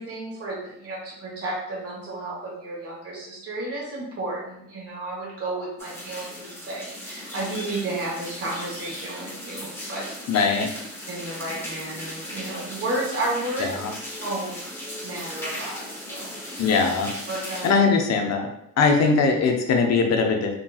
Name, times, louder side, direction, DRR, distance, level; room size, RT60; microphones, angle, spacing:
voice 1, 0.0-10.1 11.1-13.7 14.2-14.6 15.0-16.8 17.3-17.8, right 2 dB, 50° right, -5 dB, 1.2 m, -32 dB
sound 1, 5.8-17.7, equal, 10° left, 0.8 m, -37 dB
voice 2, 10.3-10.7 13.7-13.9 16.6-17.1 17.6-18.5 18.8-20.5, left 4 dB, 60° left, 3 dB, 0.6 m, -20 dB
2.9 x 2.6 x 2.3 m, 0.78 s
cardioid pair, 90°, 30 cm